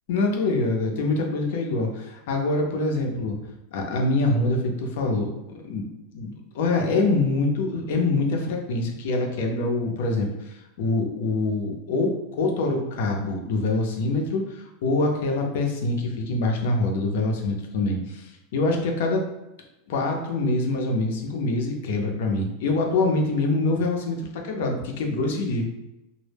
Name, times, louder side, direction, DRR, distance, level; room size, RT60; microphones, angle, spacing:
voice 1, 0.1-3.4 3.7-5.3 5.7-5.8 6.1-19.2 19.9-25.6, left 2 dB, 65° left, 2 dB, 0.5 m, -25 dB
2.0 x 2.0 x 3.2 m, 0.94 s
supercardioid pair, 165°, 0 cm